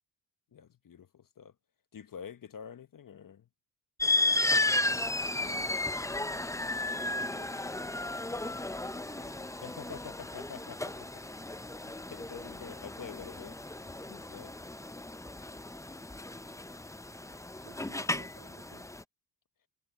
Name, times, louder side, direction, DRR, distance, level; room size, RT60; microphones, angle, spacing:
voice 1, 0.5-1.5 1.9-3.5 9.6-11.2 11.8-13.6 14.1-14.6, left 8 dB, 45° left, 1.2 m, -47 dB
sound 1, 4.0-19.0, left 2 dB, 5° left, 0.8 m, -34 dB
voice 2, 4.2-5.9 7.0-10.0 10.4-11.4 17.6-18.9, right 11 dB, 65° right, 3.9 m, -57 dB
supercardioid pair, 60°, 47 cm